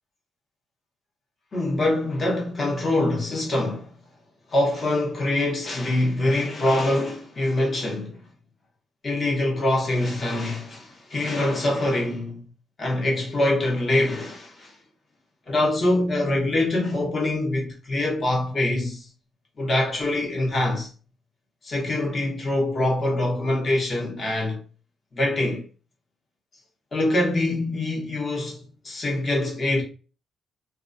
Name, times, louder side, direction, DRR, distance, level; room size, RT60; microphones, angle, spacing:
voice 1, 1.5-3.9 4.5-8.2 9.0-12.4 12.8-14.7 15.5-19.1 19.6-20.9 21.6-24.6 25.1-25.6 26.9-29.8, left 1 dB, 30° left, 0.9 m, -24 dB
2.3 x 2.2 x 2.5 m
cardioid pair, 155°, 0 cm